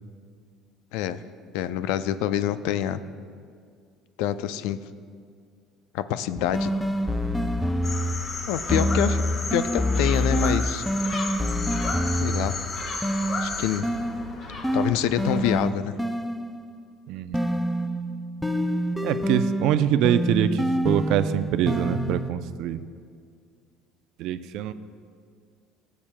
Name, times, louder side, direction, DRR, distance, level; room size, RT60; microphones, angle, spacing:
voice 1, 0.9-1.2 1.5-3.0 4.2-4.8 5.9-6.7 8.5-9.2 9.5-10.8 12.2-12.6 13.4-13.9 14.7-15.9, left 11 dB, 80° left, 13 dB, 0.4 m, -26 dB
sound 1, 6.4-8.3 8.7-12.7 13.0-16.7 17.3-22.3, equal, ahead, 0.4 m, -26 dB
Gull seagull, 6.5-15.5, left 2 dB, 55° left, 1.9 m, -40 dB
sound 2, 7.8-13.8, left 3 dB, 35° left, 1.3 m, -33 dB
voice 2, 17.1-17.6 19.0-22.8 24.2-24.7, right 10 dB, 70° right, 12 dB, 0.4 m, -24 dB
19.5 x 7.2 x 2.2 m, 2.1 s
cardioid pair, 110°, 0 cm